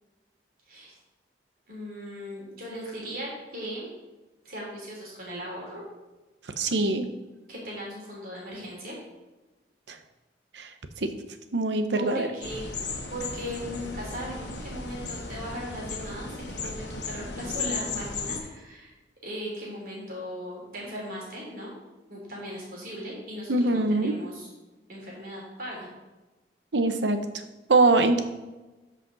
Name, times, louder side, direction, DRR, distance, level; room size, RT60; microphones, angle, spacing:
voice 1, 1.7-3.9 4.5-5.8 7.5-9.0 11.9-12.7 13.1-18.9 19.2-21.7 22.1-24.5 24.9-25.9, equal, 55° right, -4 dB, 3.4 m, -38 dB
voice 2, 6.6-7.1 9.9-10.0 10.5-10.7 11.0-11.1 11.5-12.3 23.5-24.1 26.7-27.2 27.7-28.2, right 2 dB, 85° right, 8 dB, 0.9 m, -23 dB
sound 1, 12.4-18.4, left 4 dB, 80° left, 1.3 m, -35 dB
13.0 x 5.1 x 4.0 m, 1.1 s
head